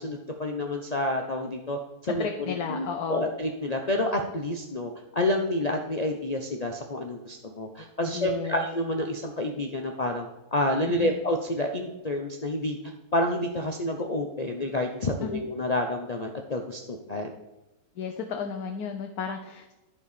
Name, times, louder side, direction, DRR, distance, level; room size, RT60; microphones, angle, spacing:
voice 1, 0.0-12.8 13.1-17.3, left 1 dB, 35° left, 3 dB, 0.7 m, -29 dB
voice 2, 2.0-3.2 8.1-8.7 11.0-11.2 15.2-15.4 18.0-19.7, left 6 dB, 75° left, 4 dB, 1.4 m, -33 dB
11.0 x 5.4 x 6.7 m, 0.99 s
omnidirectional pair, 1.6 m